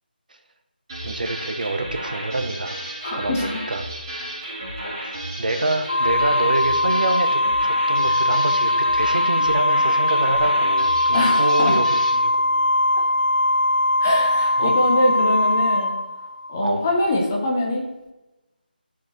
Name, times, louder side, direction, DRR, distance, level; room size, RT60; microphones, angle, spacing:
sound 1, 0.9-12.2, right 1 dB, 25° right, 2.6 m, -33 dB
voice 1, 1.0-2.8 3.1-3.9 5.0-11.9 12.2-12.7 14.6-14.7 16.6-16.8, right 2 dB, 55° right, 7 dB, 0.7 m, -26 dB
voice 2, 3.0-3.6 4.8-4.9 8.0-8.2 11.1-11.8 12.9-13.0 14.0-15.9 16.5-17.8, left 1 dB, 15° left, -1 dB, 0.7 m, -23 dB
Organ, 5.9-16.6, left 1 dB, 60° left, 0.3 m, -20 dB
11.5 x 4.8 x 3.0 m, 1.0 s
figure-of-eight pair, 175°, 5 cm